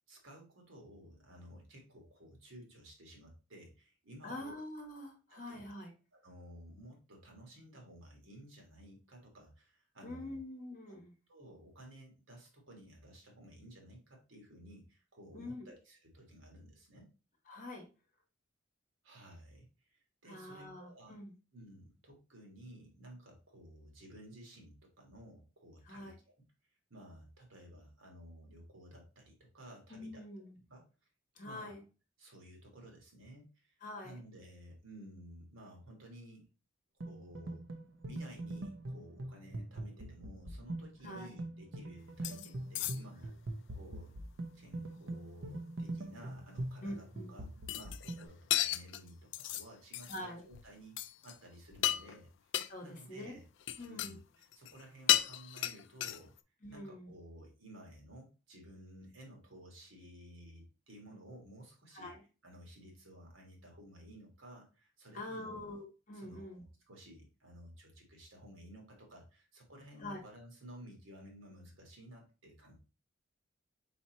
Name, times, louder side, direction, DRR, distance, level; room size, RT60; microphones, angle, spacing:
voice 1, 0.1-4.6 5.3-5.7 6.1-10.4 10.9-11.0 11.3-17.1 19.0-19.6 19.9-21.2 21.5-26.3 26.9-30.2 30.7-30.9 31.4-31.7 32.2-33.7 34.0-36.5 37.0-37.7 38.1-43.3 43.7-44.1 44.5-47.5 47.7-52.3 52.8-53.4 53.8-56.3 56.7-62.1 62.4-65.6 66.1-72.8, right 1 dB, 80° right, 1 dB, 1.7 m, -54 dB
voice 2, 4.2-5.9 10.0-11.1 15.3-15.7 17.5-17.8 20.3-21.3 25.9-26.1 29.9-30.6 31.4-31.8 33.8-34.2 41.0-41.4 46.8-47.3 50.1-50.4 52.7-53.3 53.8-54.2 56.6-57.1 61.9-62.2 65.1-66.6 70.0-70.2, left 1 dB, 40° left, 2 dB, 1.2 m, -45 dB
sound 1, 37.0-48.3, right 1 dB, 65° right, 0.7 m, -43 dB
sound 2, 42.2-42.5 42.7-43.3 47.7-48.2 48.5-49.7 49.9-50.2 50.5-50.7 51.0-51.4 51.7-52.2 52.5-52.7 53.6-54.1 54.4-54.8 55.1-56.4, left 14 dB, 60° left, 0.3 m, -33 dB
4.2 x 4.1 x 2.9 m, 0.32 s
head